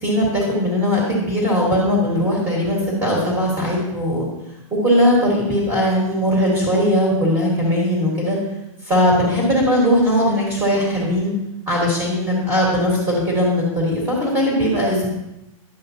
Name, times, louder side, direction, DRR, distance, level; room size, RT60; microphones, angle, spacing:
voice 1, 0.0-4.3 4.7-8.4 8.8-11.3 11.7-15.1, equal, 10° right, -3 dB, 1.5 m, -19 dB
10.5 x 7.2 x 2.8 m, 0.92 s
hypercardioid pair, 175°, 17 cm